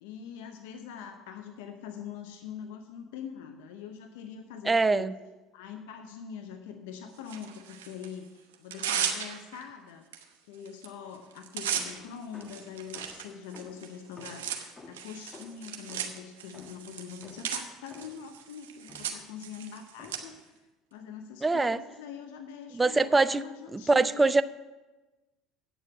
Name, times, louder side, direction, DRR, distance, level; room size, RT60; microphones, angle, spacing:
voice 1, 0.0-5.1 5.5-10.1 10.5-20.6 20.9-24.4, left 7 dB, 75° left, 6 dB, 0.7 m, -43 dB
voice 2, 4.7-5.1 21.4-21.8 22.7-23.4 23.7-24.4, right 3 dB, 20° right, 15 dB, 0.4 m, -23 dB
Tearing, 7.3-8.1 8.5-9.6 10.1-10.2 10.5-10.9 11.1-20.2, right 8 dB, 85° right, 1.0 m, -36 dB
sound 1, 11.7-18.4 18.9-19.3 20.0-20.5, left 3 dB, 30° left, 1.2 m, -52 dB
8.7 x 6.9 x 7.1 m, 1.1 s
hypercardioid pair, 75°, 0 cm